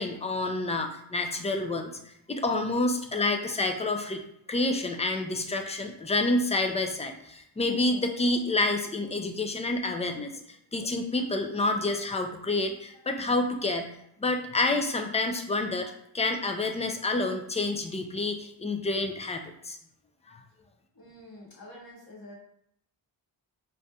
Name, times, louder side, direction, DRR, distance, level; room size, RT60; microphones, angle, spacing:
voice 1, 0.0-4.2 4.5-10.3 10.7-19.8 20.3-20.4, left 2 dB, 15° left, 5 dB, 0.3 m, -28 dB
voice 2, 20.9-22.3, left 1 dB, 45° left, -5 dB, 1.5 m, -47 dB
4.7 x 2.7 x 2.2 m, 0.72 s
cardioid pair, 60°, 49 cm